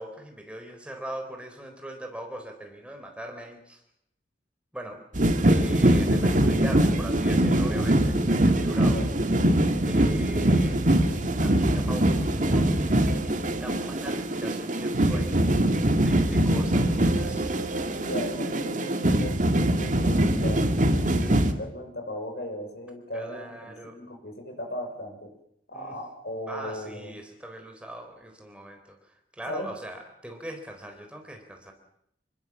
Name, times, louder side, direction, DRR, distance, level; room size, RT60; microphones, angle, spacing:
voice 1, 0.0-3.8 4.7-5.0 5.3-9.0 9.9-15.4 16.0-17.6 23.1-24.0 25.7-25.9 26.5-31.7, right 1 dB, 5° right, 4 dB, 4.2 m, -40 dB
sound 1, 5.1-21.5, right 1 dB, 45° right, 2.3 m, -23 dB
voice 2, 8.7-9.1 17.9-19.4 19.8-25.3 25.7-27.2 29.5-29.7, left 1 dB, 60° left, 4 dB, 6.3 m, -37 dB
28.5 x 21.0 x 7.5 m, 0.73 s
head